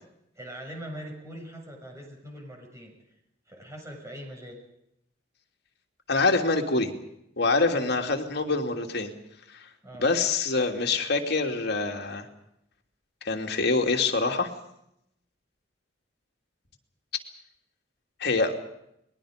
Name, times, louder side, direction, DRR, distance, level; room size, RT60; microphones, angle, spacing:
voice 1, 0.4-2.9 3.5-4.6 7.7-8.0 9.8-10.1, equal, 15° right, 1 dB, 7.2 m, -42 dB
voice 2, 6.1-6.9 7.4-9.1 10.0-12.3 13.2-14.5 18.2-18.6, left 3 dB, 60° left, 3 dB, 2.9 m, -25 dB
30.0 x 21.5 x 5.2 m, 0.78 s
head